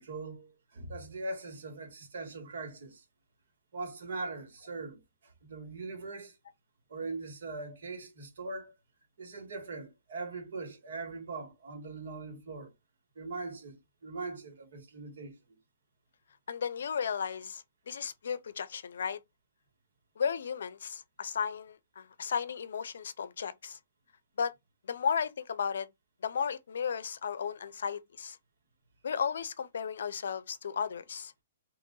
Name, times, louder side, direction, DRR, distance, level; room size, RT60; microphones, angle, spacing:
voice 1, 0.0-3.0 3.7-6.4 6.9-8.7 9.2-12.7 13.1-15.4, right 3 dB, 65° right, 1.8 m, -41 dB
voice 2, 16.5-19.2 20.2-23.8 24.4-24.5 24.9-25.9 26.2-28.4 29.0-31.3, left 7 dB, 70° left, 0.5 m, -34 dB
3.8 x 2.9 x 3.8 m
hypercardioid pair, 155°, 0 cm